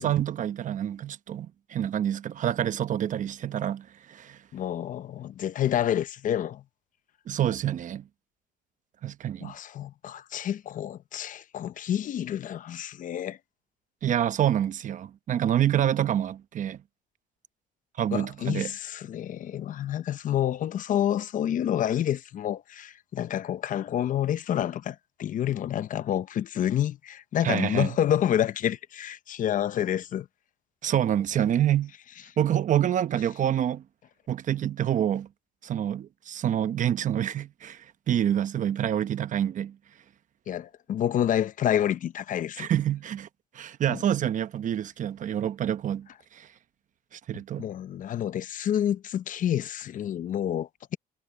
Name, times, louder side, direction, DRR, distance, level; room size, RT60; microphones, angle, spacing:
voice 1, 0.0-4.4 7.3-8.0 9.0-9.5 14.0-16.8 18.0-18.7 27.4-27.9 30.8-31.9 32.4-33.8 34.3-35.3 35.6-39.8 42.6-43.3 43.5-46.1 46.3-46.5 47.1-47.7, right 10 dB, 50° right, 0.9 m, -27 dB
voice 2, 4.5-6.6 9.4-13.4 18.1-30.3 40.5-42.7 43.9-44.0 47.6-51.0, left 10 dB, 50° left, 0.8 m, -28 dB
cardioid pair, 110°, 17 cm